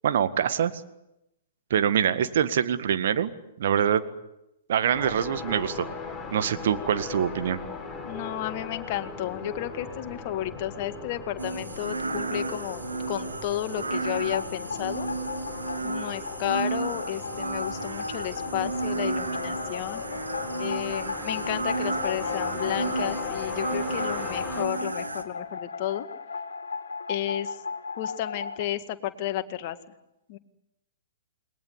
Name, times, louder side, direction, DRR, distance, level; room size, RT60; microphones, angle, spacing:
voice 1, 0.0-0.7 1.7-3.3 3.6-4.0 4.7-5.9 6.3-7.6, right 9 dB, 55° right, 10 dB, 1.8 m, -24 dB
sound 1, 4.9-24.7, left 5 dB, 10° left, 6.6 m, -39 dB
voice 2, 8.0-12.8 13.1-15.1 15.8-20.0 20.6-26.1 27.1-27.6 28.0-29.8 30.3-30.4, left 12 dB, 40° left, 9 dB, 2.0 m, -32 dB
sound 2, 11.4-25.2, right 3 dB, 80° right, 2.6 m, -33 dB
sound 3, 14.0-28.7, left 5 dB, 65° left, 2.6 m, -36 dB
29.0 x 21.5 x 8.4 m, 0.88 s
figure-of-eight pair, 110°, 0 cm